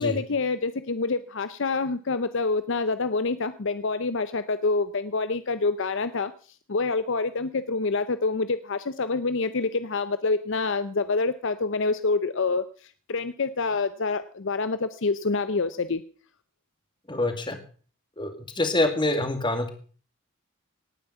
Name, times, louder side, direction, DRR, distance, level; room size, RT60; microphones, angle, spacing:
voice 1, 0.0-6.3 6.7-16.0, left 3 dB, 55° left, 12 dB, 0.6 m, -27 dB
voice 2, 17.1-17.6 18.2-19.7, left 2 dB, 20° left, 7 dB, 2.1 m, -26 dB
18.5 x 9.2 x 5.7 m, 0.42 s
head